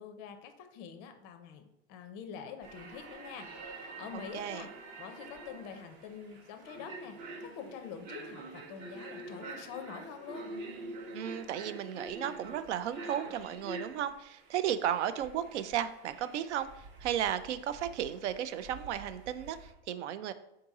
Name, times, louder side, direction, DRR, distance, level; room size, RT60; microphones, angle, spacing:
voice 1, 0.0-3.5 3.7-4.7 5.0-10.5, left 7 dB, 30° left, 7 dB, 0.4 m, -46 dB
sound 1, 2.6-19.7, right 2 dB, 40° right, 0.7 m, -47 dB
voice 2, 4.1-4.7 11.1-20.3, right 10 dB, 85° right, 13 dB, 0.5 m, -34 dB
3.8 x 2.7 x 4.7 m, 0.87 s
supercardioid pair, 150°, 34 cm